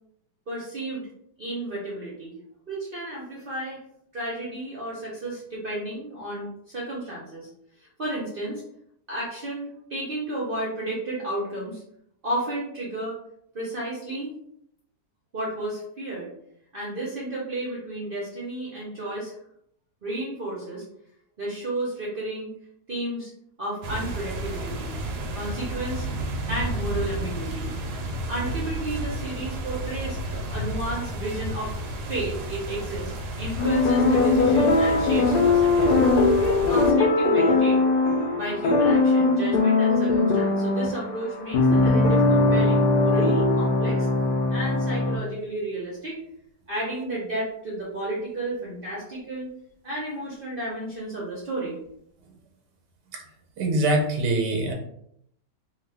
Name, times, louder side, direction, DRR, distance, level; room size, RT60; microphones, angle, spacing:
voice 1, 0.5-1.1 1.4-2.3 2.7-3.8 4.1-7.5 7.8-8.6 9.1-11.8 12.2-13.2 13.5-14.3 15.3-16.3 16.7-19.3 20.0-20.8 21.4-22.5 22.9-23.3 23.6-24.9 25.3-26.1 26.5-27.7 28.3-31.7 32.1-33.1 33.4-36.0 36.4-37.8 38.3-44.1 44.5-46.2 46.7-49.5 49.8-51.7, right 1 dB, 50° right, -5 dB, 0.6 m, -32 dB
sound 1, 23.8-36.9, right 1 dB, 75° right, 1.0 m, -32 dB
sound 2, 33.6-45.2, left 3 dB, 75° left, 1.1 m, -20 dB
voice 2, 53.6-54.7, right 2 dB, 90° right, 2 dB, 1.3 m, -23 dB
2.8 x 2.4 x 3.3 m, 0.72 s
omnidirectional pair, 1.8 m